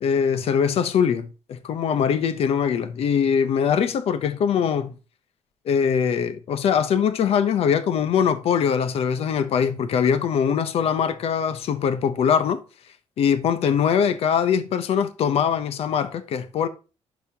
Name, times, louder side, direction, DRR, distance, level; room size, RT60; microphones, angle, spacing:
voice 1, 0.0-4.9 5.7-12.6 13.2-16.7, left 7 dB, 60° left, 0.8 m, -22 dB
11.0 x 4.2 x 2.8 m
cardioid pair, 135°, 11 cm